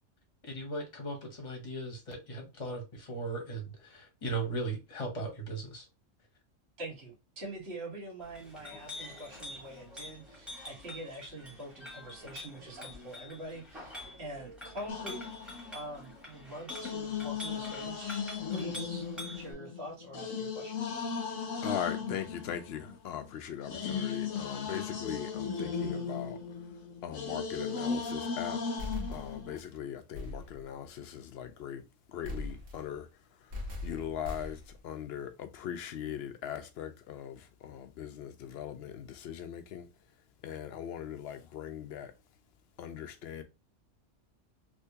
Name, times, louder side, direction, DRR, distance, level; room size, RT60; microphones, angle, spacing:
voice 1, 0.4-5.9, right 2 dB, 30° left, 1.0 m, -37 dB
voice 2, 6.8-15.2 15.7-18.3 18.5-19.1 19.3-20.8, right 1 dB, 55° right, 1.7 m, -44 dB
Chink clink, 8.2-19.5, left 1 dB, ahead, 1.2 m, -47 dB
sound 1, 14.9-16.1 16.7-23.2 23.7-29.6, left 5 dB, 85° left, 1.1 m, -37 dB
voice 3, 21.6-28.6 29.1-39.9 40.4-42.1 42.8-43.4, left 9 dB, 65° left, 0.7 m, -40 dB
sound 2, 28.8-29.7 30.1-30.7 32.2-33.0 33.5-34.8, left 2 dB, 70° right, 1.7 m, -40 dB
3.4 x 2.8 x 2.7 m
omnidirectional pair, 1.3 m